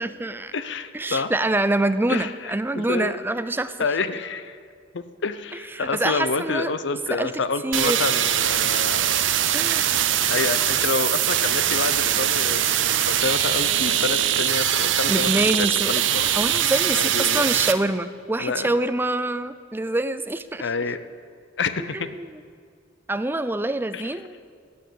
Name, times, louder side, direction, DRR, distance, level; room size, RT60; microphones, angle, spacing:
voice 1, 0.0-0.5 0.9-3.8 5.7-6.7 7.1-7.3 7.6-8.3 9.5-9.9 15.1-16.0 16.4-20.7 21.9-22.4 23.1-24.4, right 2 dB, 10° right, 12 dB, 0.4 m, -25 dB
voice 2, 0.5-1.3 2.1-3.1 3.8-4.6 4.9-9.2 10.3-16.3 17.0-17.5 18.4-18.7 20.6-21.0 21.6-22.2 23.9-24.1, left 4 dB, 65° left, 13 dB, 0.7 m, -28 dB
sound 1, 7.7-17.7, right 10 dB, 75° right, 0.7 m, -22 dB
17.0 x 6.6 x 8.5 m, 2.1 s
head